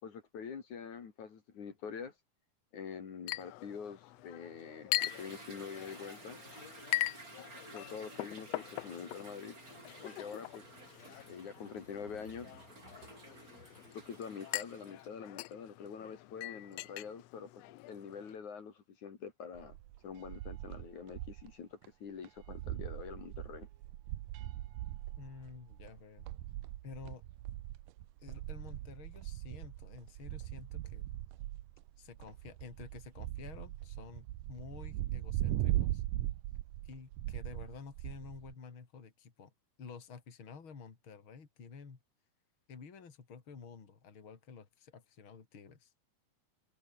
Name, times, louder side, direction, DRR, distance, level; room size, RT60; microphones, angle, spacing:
voice 1, 0.0-2.1 2.7-6.4 7.7-9.6 10.0-10.7 11.3-12.5 13.9-19.8 20.0-23.7, left 6 dB, 65° left, 4.4 m, -45 dB
Chink clink, 3.3-18.3, left 17 dB, 85° left, 1.4 m, -42 dB
Toilet flush / Drip / Trickle dribble, 5.0-15.1, right 3 dB, 25° right, 4.9 m, -54 dB
sound 1, 19.5-21.5 21.8-21.9 22.2-38.5, right 15 dB, 85° right, 2.5 m, -40 dB
voice 2, 25.2-26.3 26.8-27.2 28.2-31.1 32.0-36.0 36.8-39.5 39.8-42.0 42.7-45.9, left 5 dB, 40° left, 3.8 m, -51 dB
omnidirectional pair, 3.6 m